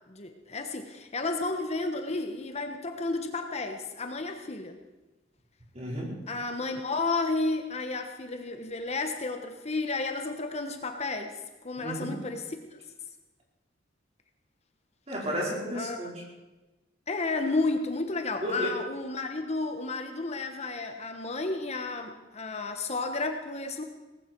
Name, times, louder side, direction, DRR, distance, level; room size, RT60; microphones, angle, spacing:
voice 1, 0.1-4.8 6.3-12.8 15.7-16.0 17.1-23.8, left 3 dB, 35° left, 6 dB, 1.2 m, -32 dB
voice 2, 5.7-6.1 11.8-12.1 15.1-16.2 18.4-18.7, equal, 35° right, -3 dB, 4.9 m, -33 dB
18.5 x 15.5 x 4.6 m, 1.1 s
head